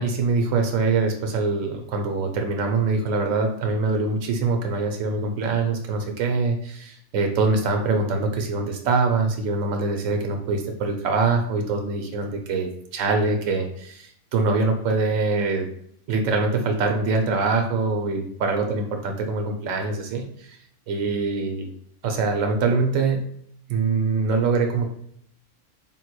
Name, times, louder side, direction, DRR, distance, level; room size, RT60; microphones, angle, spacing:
voice 1, 0.0-15.7 16.1-20.2 20.9-21.7 22.0-23.2 23.7-24.9, right 3 dB, 80° right, 3 dB, 1.0 m, -24 dB
3.6 x 2.9 x 2.2 m, 0.67 s
omnidirectional pair, 1.3 m